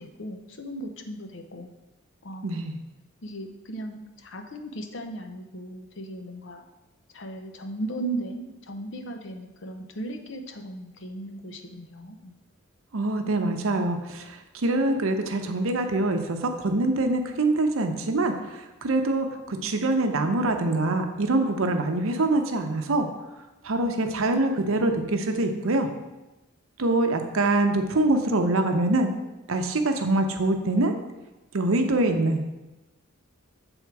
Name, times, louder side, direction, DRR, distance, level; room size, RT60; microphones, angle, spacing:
voice 1, 0.0-1.7 2.2-2.7 3.2-6.6 7.1-12.3, right 1 dB, 65° left, 5 dB, 0.7 m, -37 dB
voice 2, 2.4-2.7 12.9-23.1 23.6-25.9 26.8-29.1 29.5-30.9 31.5-32.4, right 2 dB, 80° right, 5 dB, 0.7 m, -24 dB
7.0 x 3.6 x 4.7 m, 1.0 s
head